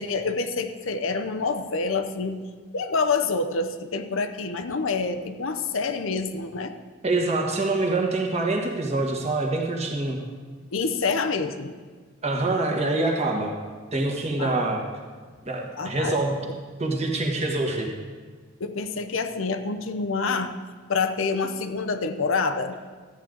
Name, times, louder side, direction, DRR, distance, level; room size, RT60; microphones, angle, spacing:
voice 1, 0.0-2.4 2.7-6.7 10.7-11.7 14.4-14.6 15.8-16.2 18.6-20.5 20.9-22.8, left 4 dB, 70° left, 8 dB, 0.7 m, -27 dB
voice 2, 7.0-10.2 12.2-13.5 13.9-14.8 15.4-16.4 16.8-17.9, right 2 dB, 30° right, 0 dB, 1.5 m, -25 dB
13.5 x 9.3 x 3.9 m, 1.5 s
head